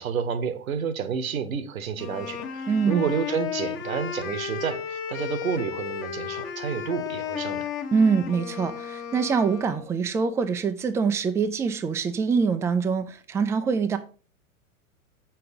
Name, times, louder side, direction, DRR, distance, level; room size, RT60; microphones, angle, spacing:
voice 1, 0.0-7.7, right 7 dB, 70° right, 1.2 m, -30 dB
Wind instrument woodwind instrument, 2.0-9.9, left 8 dB, 30° left, 1.2 m, -33 dB
voice 2, 2.7-3.1 7.9-14.0, right 5 dB, 5° right, 0.4 m, -24 dB
7.5 x 6.1 x 5.1 m
figure-of-eight pair, 100°, 42 cm